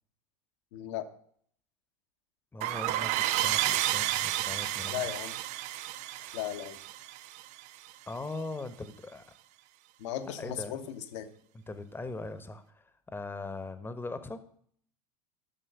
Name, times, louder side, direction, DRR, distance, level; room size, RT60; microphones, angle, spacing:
voice 1, 0.7-1.1 4.9-5.3 6.3-6.8 10.0-11.3, left 10 dB, 55° left, 6 dB, 1.1 m, -36 dB
voice 2, 2.5-5.1 6.2-6.4 8.1-9.2 10.2-10.9 11.7-14.4, left 2 dB, 10° left, 11 dB, 1.1 m, -40 dB
sound 1, 2.6-7.9, right 14 dB, 40° right, 0.5 m, -31 dB
13.0 x 6.3 x 6.7 m, 0.62 s
figure-of-eight pair, 75°, 18 cm